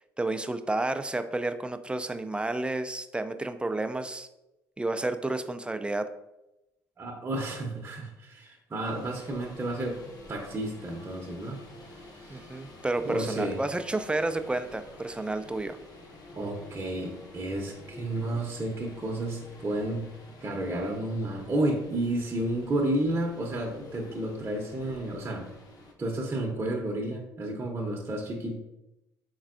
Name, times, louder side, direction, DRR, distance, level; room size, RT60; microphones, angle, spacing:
voice 1, 0.2-4.3 4.8-6.1 12.3-15.8, right 2 dB, 10° right, 9 dB, 0.3 m, -31 dB
voice 2, 7.0-10.0 10.3-11.6 12.2-12.5 13.0-13.6 16.3-20.0 20.4-25.5 26.0-28.6, right 1 dB, 25° right, -1 dB, 0.7 m, -31 dB
sound 1, 8.8-25.9, left 2 dB, 40° left, 0.8 m, -49 dB
4.4 x 3.9 x 2.5 m, 0.93 s
hypercardioid pair, 60°, 9 cm